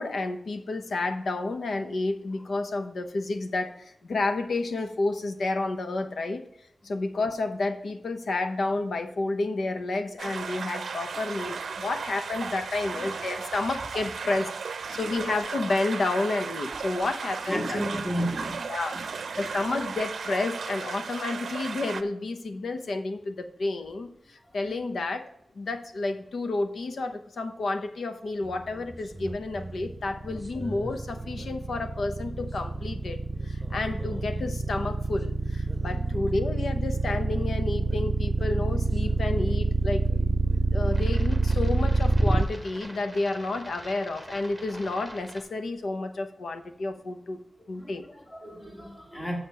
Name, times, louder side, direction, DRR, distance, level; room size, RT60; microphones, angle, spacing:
voice 1, 0.0-6.4 6.8-17.8 18.7-25.3 25.5-40.4 40.7-47.4 47.7-48.1, left 2 dB, 70° left, 0.9 m, -30 dB
sound 1, 10.2-22.0, right 5 dB, 85° right, 0.6 m, -35 dB
voice 2, 17.5-18.7 18.9-19.0 35.9-36.2 47.8-49.4, equal, 15° left, 1.5 m, -33 dB
sound 2, 28.4-45.4, right 1 dB, 5° right, 1.3 m, -45 dB
sound 3, 29.1-42.4, right 3 dB, 25° right, 0.5 m, -26 dB
7.3 x 6.6 x 5.6 m
wide cardioid pair, 160°, 0 cm